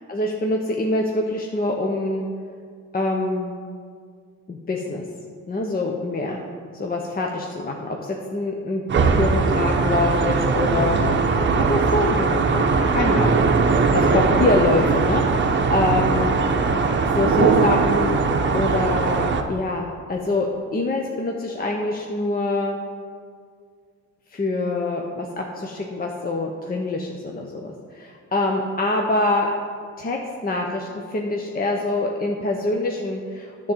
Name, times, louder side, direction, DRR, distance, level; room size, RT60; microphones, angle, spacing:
voice 1, 0.0-2.3 2.9-3.5 4.5-5.0 5.5-6.4 6.8-8.8 9.2-11.0 11.4-13.4 13.9-16.3 17.0-18.2 18.5-22.8 24.3-29.5 30.0-33.7, left 2 dB, 30° left, 1 dB, 0.8 m, -25 dB
sound 1, 8.9-19.4, right 4 dB, 40° right, 0.8 m, -20 dB
10.0 x 3.8 x 7.3 m, 2.1 s
cardioid pair, 90°, 30 cm